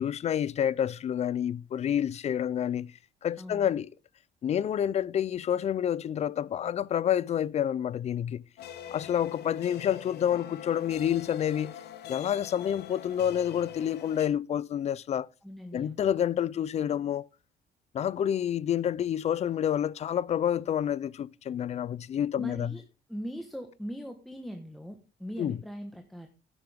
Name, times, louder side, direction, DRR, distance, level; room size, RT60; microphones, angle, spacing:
voice 1, 0.0-2.9 3.2-3.9 4.4-8.4 8.9-11.7 12.1-15.3 15.7-17.2 17.9-22.7 25.4-25.6, left 9 dB, 40° left, 0.4 m, -28 dB
voice 2, 3.4-3.7 15.4-16.0 22.4-22.8 23.1-26.3, equal, ahead, 1.2 m, -40 dB
sound 1, 8.6-14.3, left 10 dB, 75° left, 1.3 m, -43 dB
11.5 x 9.7 x 3.4 m
cardioid pair, 135°, 17 cm